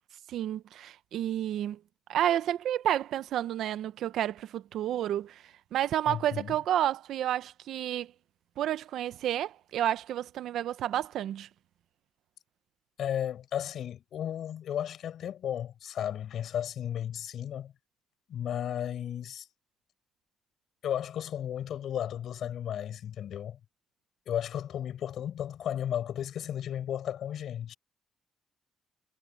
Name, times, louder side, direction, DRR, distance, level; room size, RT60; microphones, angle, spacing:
voice 1, 0.3-1.8 2.1-8.1 8.6-11.5, right 11 dB, 75° right, 0.8 m, -30 dB
voice 2, 6.1-6.6 13.0-17.7 18.3-19.5 20.8-23.6 24.3-27.7, left 10 dB, 70° left, 5.5 m, -34 dB
cardioid pair, 90°, 0 cm